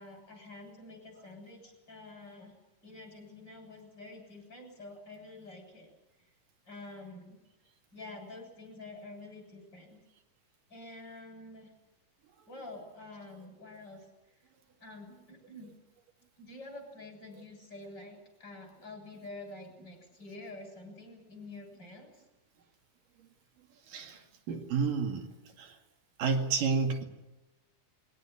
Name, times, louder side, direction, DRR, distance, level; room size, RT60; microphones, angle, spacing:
voice 1, 0.0-2.5 2.8-5.9 6.7-7.4 7.9-10.0 10.7-11.7 12.5-14.1 14.8-15.7 16.4-22.2, left 2 dB, 30° left, 3 dB, 7.9 m, -48 dB
voice 2, 23.9-25.3 25.6-25.8 26.2-27.0, right 5 dB, 90° right, 3 dB, 4.0 m, -30 dB
22.5 x 17.5 x 9.9 m, 0.98 s
omnidirectional pair, 3.7 m